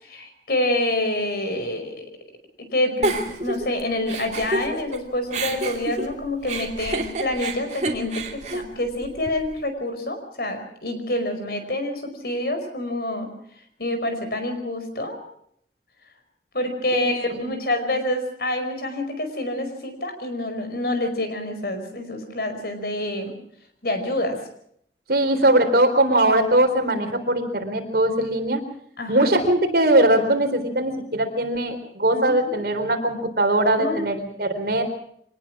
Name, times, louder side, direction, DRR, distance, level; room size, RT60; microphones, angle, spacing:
voice 1, 0.0-2.1 2.6-13.3 13.8-15.2 16.5-23.3 23.8-24.4 29.0-29.3 32.1-32.6 33.8-34.0, left 1 dB, 60° left, 7 dB, 5.0 m, -27 dB
Giggle, 3.0-5.0 5.3-9.5, right 2 dB, 40° right, 2.8 m, -29 dB
voice 2, 16.9-17.4 25.1-28.6 29.1-34.8, right 1 dB, 60° right, 5 dB, 3.9 m, -21 dB
24.5 x 19.5 x 6.2 m, 0.67 s
head